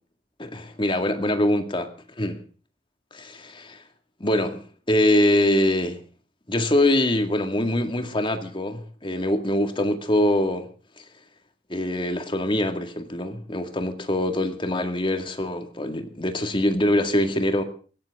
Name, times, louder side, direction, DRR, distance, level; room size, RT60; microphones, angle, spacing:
voice 1, 0.4-2.4 3.1-3.8 4.2-6.0 6.5-10.7 11.0-11.1 11.7-17.6, left 1 dB, 30° left, 2.1 m, -24 dB
21.5 x 17.0 x 3.7 m
head